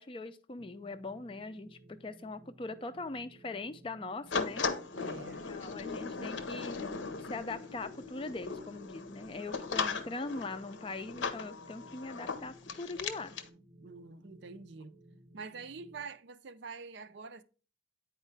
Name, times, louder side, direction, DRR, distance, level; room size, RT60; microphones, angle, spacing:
voice 1, 0.0-4.7 5.5-6.8 7.2-13.4, left 3 dB, 25° left, 0.4 m, -41 dB
sound 1, 0.6-16.1, right 1 dB, 20° right, 0.7 m, -58 dB
sound 2, 4.3-13.5, left 5 dB, 75° left, 0.7 m, -38 dB
voice 2, 4.9-5.4 13.8-15.0 15.3-17.4, right 4 dB, 65° right, 0.5 m, -46 dB
9.0 x 4.5 x 3.3 m
head